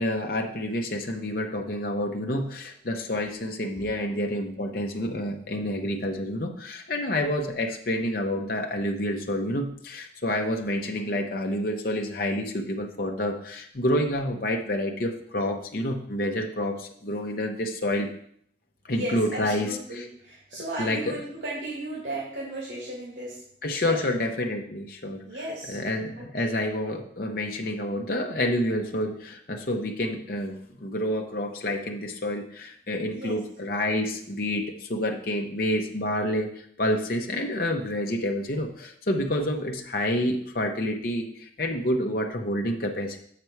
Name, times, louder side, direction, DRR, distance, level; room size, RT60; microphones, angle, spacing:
voice 1, 0.0-18.1 18.8-20.1 20.8-21.2 23.6-25.2 25.7-36.5 36.8-43.2, left 1 dB, 50° left, 2 dB, 0.7 m, -28 dB
voice 2, 18.9-23.4 23.7-24.0 25.2-25.8 26.4-26.5 33.1-33.4, right 1 dB, 90° right, -5 dB, 2.4 m, -35 dB
6.6 x 5.9 x 4.6 m, 0.65 s
head